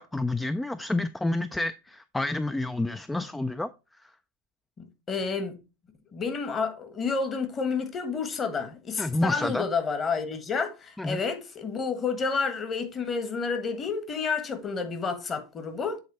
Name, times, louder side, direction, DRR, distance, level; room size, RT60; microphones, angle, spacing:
voice 1, 0.0-3.7 9.0-9.7 11.0-11.2, left 2 dB, 5° left, 0.3 m, -29 dB
voice 2, 5.1-5.6 6.1-16.0, left 5 dB, 25° left, 1.3 m, -30 dB
7.9 x 4.0 x 4.0 m
figure-of-eight pair, 85°, 0 cm